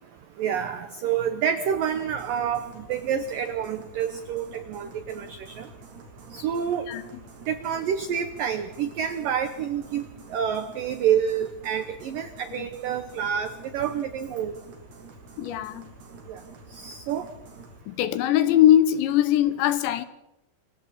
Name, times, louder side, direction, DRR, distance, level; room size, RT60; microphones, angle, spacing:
voice 1, 0.4-5.7 6.3-6.9 7.5-14.5 16.3-16.4 16.7-17.3, right 8 dB, 85° right, 1.9 m, -28 dB
sound 1, 1.7-17.8, right 3 dB, 60° right, 5.4 m, -48 dB
voice 2, 15.4-15.9 17.9-20.1, left 11 dB, 75° left, 3.0 m, -21 dB
28.0 x 23.5 x 4.3 m
omnidirectional pair, 5.5 m